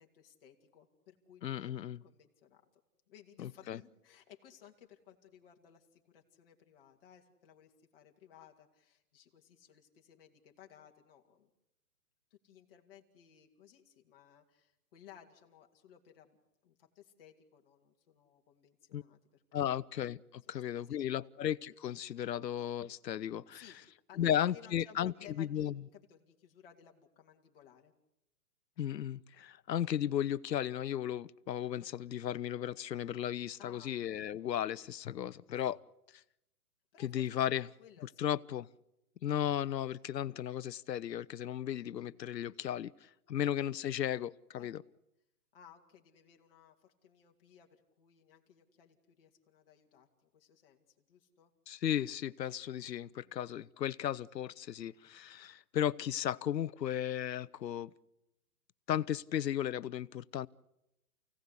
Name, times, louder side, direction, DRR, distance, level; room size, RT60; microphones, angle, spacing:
voice 1, 0.0-1.7 2.0-2.8 3.1-11.5 12.3-16.4 16.6-19.8 20.5-21.3 23.5-27.9 33.6-34.3 36.9-37.5 37.8-38.3 43.3-43.6 44.6-44.8 45.5-51.5 53.2-53.4, left 9 dB, 35° left, 2.7 m, -59 dB
voice 2, 1.4-2.0 3.4-3.8 18.9-19.0 19.5-23.6 24.2-25.7 28.8-35.8 37.0-37.7 38.2-38.7 39.2-42.9 43.3-44.8 51.7-57.9 58.9-60.5, left 10 dB, 85° left, 0.9 m, -35 dB
29.0 x 17.0 x 8.4 m
hypercardioid pair, 170°, 49 cm